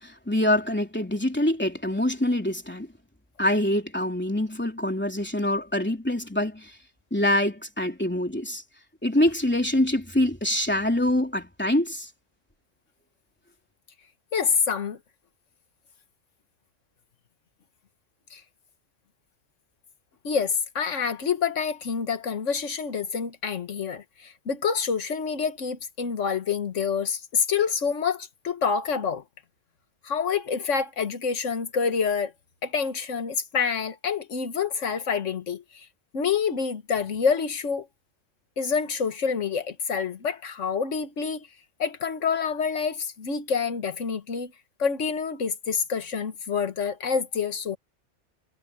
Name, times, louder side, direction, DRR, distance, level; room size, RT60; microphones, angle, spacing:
voice 1, 0.0-2.9 3.4-6.7 7.1-8.6 9.0-12.1, left 1 dB, 10° left, 3.5 m, -25 dB
voice 2, 14.3-15.0 18.3-18.4 20.2-29.2 30.0-32.3 32.6-35.9 36.1-37.9 38.6-41.5 41.8-44.5 44.8-47.8, left 6 dB, 85° left, 1.7 m, -27 dB
omnidirectional pair, 1.2 m